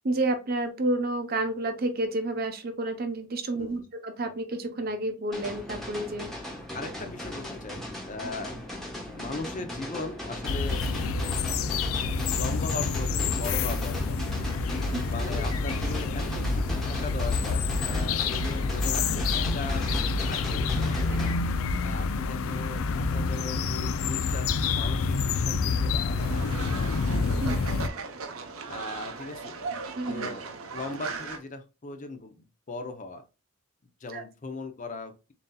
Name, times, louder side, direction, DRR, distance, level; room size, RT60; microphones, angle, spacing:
voice 1, 0.0-6.3 14.9-15.1 15.3-15.4 21.1-21.4 27.4-27.5 30.0-30.3 34.1-34.2, right 2 dB, 45° right, 8 dB, 0.7 m, -30 dB
sound 1, 5.3-21.3, left 1 dB, ahead, 1.1 m, -38 dB
voice 2, 6.7-8.6 9.2-10.8 12.3-14.2 15.0-19.8 20.3-21.3 21.8-27.9 28.7-29.6 30.1-33.2 34.0-35.3, left 3 dB, 35° left, 7 dB, 0.6 m, -39 dB
sound 2, 10.4-27.9, left 4 dB, 80° left, 0.4 m, -28 dB
Fowl, 26.2-31.4, right 4 dB, 80° right, 0.8 m, -38 dB
7.1 x 2.7 x 2.2 m, 0.29 s
head